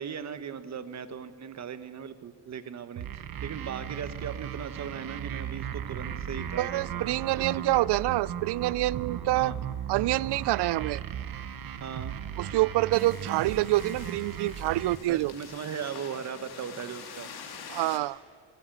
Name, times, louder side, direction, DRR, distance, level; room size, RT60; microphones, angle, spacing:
voice 1, 0.0-7.7 9.3-9.6 11.7-12.1 15.1-17.3, right 7 dB, 40° right, 12 dB, 1.1 m, -38 dB
sound 1, 3.0-15.0, right 9 dB, 55° right, 1.2 m, -37 dB
voice 2, 6.6-9.5 9.9-11.0 12.4-15.3 17.7-18.2, right 17 dB, 70° right, 23 dB, 0.5 m, -27 dB
sound 2, 12.9-18.0, left 6 dB, 60° left, 2.6 m, -46 dB
27.0 x 14.5 x 8.9 m, 2.3 s
cardioid pair, 160°, 42 cm